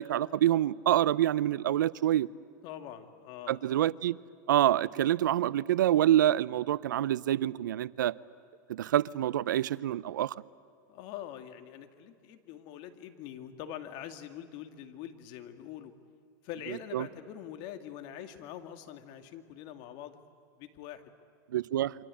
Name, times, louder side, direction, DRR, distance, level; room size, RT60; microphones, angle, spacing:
voice 1, 0.0-2.3 3.5-4.2 4.5-8.1 8.7-10.3 16.9-17.1 21.5-21.9, right 12 dB, 85° right, 0.6 m, -26 dB
voice 2, 2.6-3.8 10.9-15.9 16.4-20.2 20.6-21.1, left 10 dB, 55° left, 2.3 m, -44 dB
28.0 x 25.0 x 8.6 m
hypercardioid pair, 115°, 10 cm